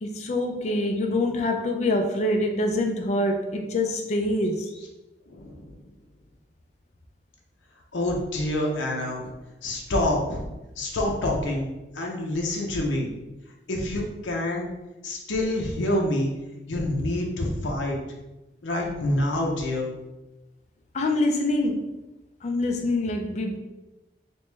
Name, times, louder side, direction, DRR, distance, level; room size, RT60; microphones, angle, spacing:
voice 1, 0.0-4.7 20.9-21.9 22.4-23.6, left 1 dB, 40° left, 3 dB, 0.3 m, -25 dB
voice 2, 5.3-5.8 7.9-9.3 9.6-10.4 10.8-11.7 11.9-13.1 13.7-14.7 15.0-16.3 16.7-18.0 18.6-19.9, left 1 dB, 90° left, -1 dB, 0.6 m, -27 dB
3.1 x 2.9 x 3.3 m, 1.0 s
head